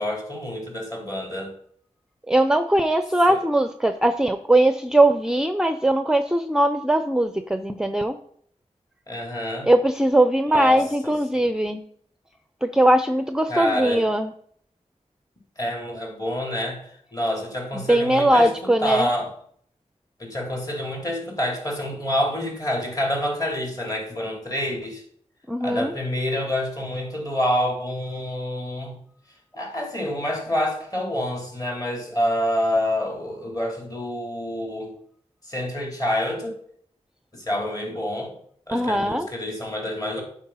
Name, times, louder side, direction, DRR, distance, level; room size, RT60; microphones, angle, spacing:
voice 1, 0.0-1.5 3.3-3.4 9.1-9.7 10.5-11.4 13.5-14.1 15.6-18.5 18.8-19.3 20.2-25.0 25.6-29.0 29.5-34.9 35.4-36.6 37.3-38.3 38.7-40.2, left 1 dB, 30° left, 0 dB, 3.3 m, -27 dB
voice 2, 2.3-8.2 9.6-11.8 12.6-14.3 17.7-19.1 25.5-25.9 38.7-39.3, right 1 dB, 5° right, 9 dB, 0.6 m, -20 dB
10.5 x 5.3 x 5.6 m, 0.63 s
wide cardioid pair, 85°, 13 cm